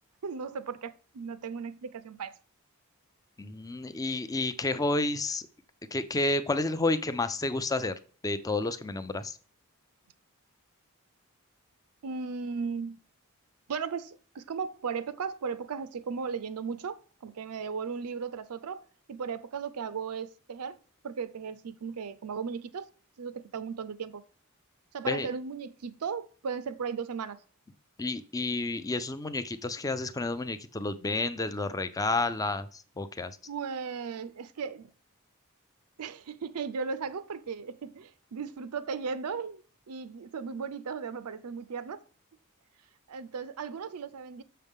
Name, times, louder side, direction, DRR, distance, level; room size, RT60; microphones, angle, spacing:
voice 1, 0.2-2.4 12.0-13.0 13.7-18.8 19.1-20.8 21.0-22.9 23.2-24.2 24.9-27.4 33.5-34.9 36.0-39.6 39.9-42.0 43.1-44.4, right 5 dB, 85° right, 0.5 m, -36 dB
voice 2, 3.4-5.4 5.9-8.0 8.2-9.4 25.0-25.3 28.0-33.4, left 2 dB, 15° left, 0.4 m, -30 dB
6.7 x 6.4 x 3.6 m
head